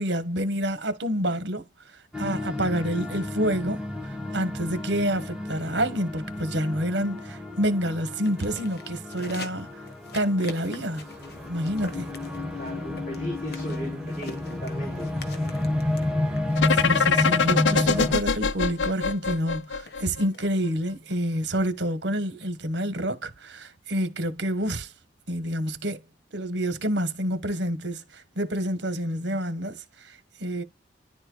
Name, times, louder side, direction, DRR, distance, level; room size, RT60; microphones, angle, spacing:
voice 1, 0.0-1.6 2.2-3.8 4.3-9.7 10.1-11.1 11.5-12.1 16.7-24.9 25.3-26.0 26.3-30.6, equal, 75° right, 1.4 m, -28 dB
sound 1, 2.1-18.1, left 1 dB, 5° right, 1.3 m, -31 dB
sound 2, 8.2-20.7, left 3 dB, 55° left, 1.4 m, -46 dB
voice 2, 12.6-15.1, equal, 40° left, 3.0 m, -37 dB
sound 3, 16.6-20.4, left 5 dB, 85° left, 0.5 m, -23 dB
11.0 x 4.4 x 2.3 m
head